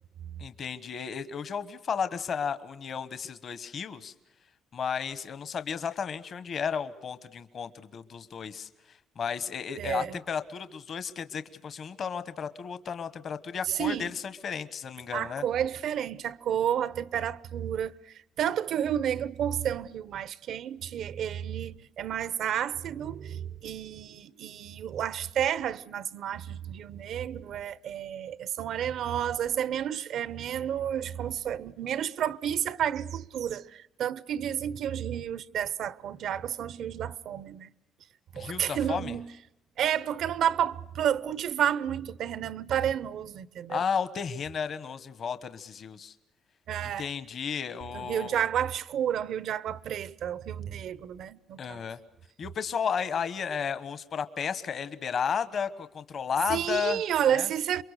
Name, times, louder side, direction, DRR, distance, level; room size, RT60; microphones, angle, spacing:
voice 1, 0.4-4.1 4.7-8.7 9.2-14.1 14.4-15.4 38.3-39.2 43.7-46.1 46.8-48.4 51.6-52.0 52.4-57.0 57.3-57.5, left 6 dB, 50° left, 1.2 m, -33 dB
voice 2, 9.8-10.2 13.7-14.1 15.1-17.9 18.4-37.7 38.3-39.3 39.8-43.8 46.7-47.1 47.9-51.8 56.5-57.8, right 9 dB, 65° right, 0.8 m, -31 dB
28.0 x 23.5 x 6.6 m
cardioid pair, 120°, 0 cm